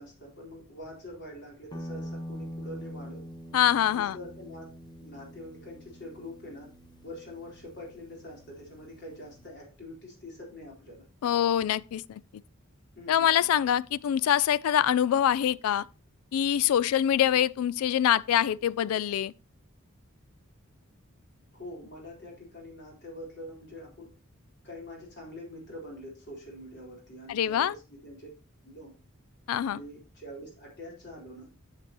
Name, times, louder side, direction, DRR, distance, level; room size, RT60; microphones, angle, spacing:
voice 1, 0.0-3.2 3.9-4.7 5.0-6.7 7.0-11.1 13.0-13.5 21.5-24.1 24.6-28.3 28.6-28.9 29.6-31.5, left 1 dB, 55° left, 3.8 m, -45 dB
Guitar, 1.7-9.5, equal, 20° left, 1.0 m, -44 dB
voice 2, 3.5-4.2 11.2-12.2 13.1-15.9 16.3-19.3 27.3-27.7 29.5-29.8, left 10 dB, 85° left, 0.3 m, -25 dB
10.0 x 6.8 x 2.9 m
head